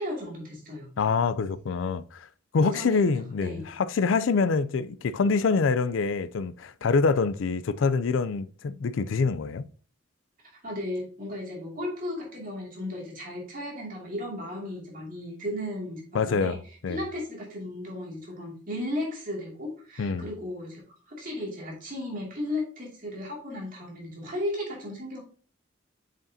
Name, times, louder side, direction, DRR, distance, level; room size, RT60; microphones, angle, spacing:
voice 1, 0.0-0.9 2.6-3.0 3.4-3.6 10.6-16.6 16.9-20.8 21.1-25.2, left 1 dB, 45° right, 2.4 m, -35 dB
voice 2, 1.0-2.3 2.5-9.7 16.1-16.6 16.8-17.0 20.0-20.3, left 4 dB, 85° left, 0.4 m, -25 dB
7.6 x 5.1 x 2.7 m
head